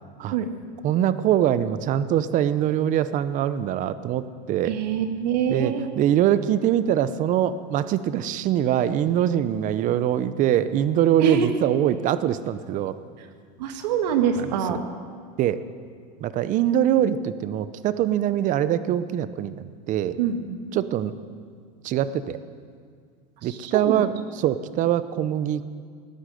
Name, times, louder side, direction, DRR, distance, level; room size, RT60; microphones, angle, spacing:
voice 1, 0.8-4.8 5.5-12.9 14.7-14.8 15.4-15.6 16.2-20.2 20.7-21.1 21.8-22.4 23.4-24.1 24.4-25.7, right 11 dB, 40° right, 14 dB, 0.7 m, -23 dB
voice 2, 4.7-5.8 11.2-11.5 13.6-14.9 20.2-20.6 23.4-24.0, right 7 dB, 80° right, 6 dB, 1.8 m, -25 dB
18.0 x 10.5 x 7.8 m, 2.1 s
supercardioid pair, 135°, 21 cm